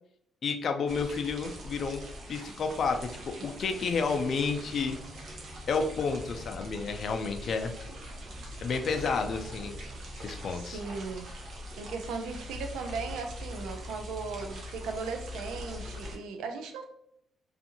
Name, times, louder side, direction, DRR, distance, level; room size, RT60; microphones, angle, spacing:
voice 1, 0.4-2.0 2.3-5.0 5.7-7.7 8.6-9.7 10.2-10.8, left 5 dB, 55° left, 6 dB, 0.4 m, -30 dB
sound 1, 0.9-16.2, equal, 65° right, 0.7 m, -42 dB
voice 2, 10.5-11.3 11.8-16.8, right 4 dB, 90° right, 5 dB, 0.4 m, -37 dB
2.6 x 2.4 x 2.7 m, 0.74 s
cardioid pair, 90°, 0 cm